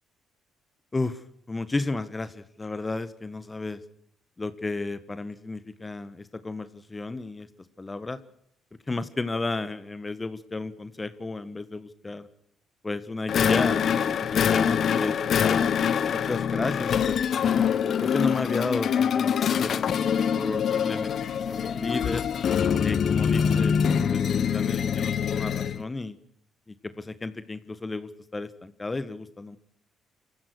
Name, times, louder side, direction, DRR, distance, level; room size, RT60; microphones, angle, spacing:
voice 1, 0.9-3.8 4.4-7.5 7.8-8.2 8.9-12.3 12.8-15.7 16.1-17.7 18.0-20.1 20.3-21.1 21.5-22.2 22.8-23.7 24.1-26.2 26.7-29.6, left 3 dB, 25° left, 13 dB, 1.6 m, -33 dB
sound 1, 13.3-25.8, left 7 dB, 55° left, 1.2 m, -24 dB
28.5 x 15.5 x 6.4 m, 0.71 s
hypercardioid pair, 45°, 0 cm